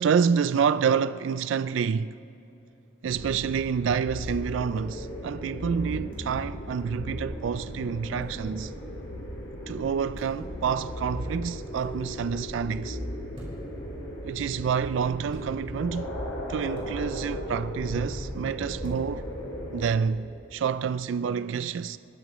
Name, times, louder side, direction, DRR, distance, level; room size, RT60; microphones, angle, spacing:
voice 1, 0.0-2.1 3.0-8.7 9.7-13.0 14.2-16.1 16.5-19.3 19.7-22.0, right 6 dB, 75° right, 0.3 m, -28 dB
sound 1, 3.0-19.8, equal, 90° left, 4.4 m, -36 dB
sound 2, 4.2-4.4 6.1-6.3 8.2-8.4 10.1-10.5 11.7-11.9 13.3-13.8 15.3-15.5 16.7-17.0 18.8-19.0, equal, 30° right, 4.8 m, -48 dB
29.5 x 15.5 x 3.1 m
head